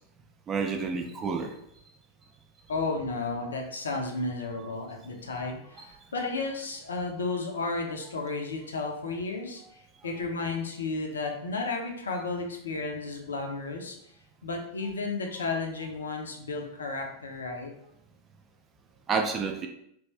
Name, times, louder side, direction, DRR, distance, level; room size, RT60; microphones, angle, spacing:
voice 1, 0.5-1.5 4.5-4.8 5.8-5.9 10.0-10.1 19.1-19.7, right 5 dB, 25° right, 3 dB, 0.4 m, -30 dB
voice 2, 2.7-14.0 14.4-17.7, left 3 dB, 70° left, 2 dB, 0.6 m, -33 dB
3.3 x 2.5 x 3.2 m, 0.75 s
figure-of-eight pair, 90°, 0 cm